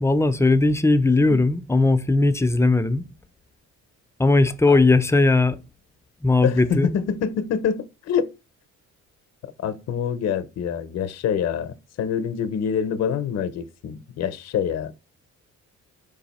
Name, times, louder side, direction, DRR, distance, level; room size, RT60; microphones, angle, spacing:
voice 1, 0.0-3.0 4.2-5.6 6.2-6.9, left 2 dB, 10° left, 0.4 m, -18 dB
voice 2, 6.4-8.2 9.4-14.9, left 7 dB, 60° left, 0.6 m, -26 dB
4.8 x 2.6 x 4.1 m
cardioid pair, 90°, 30 cm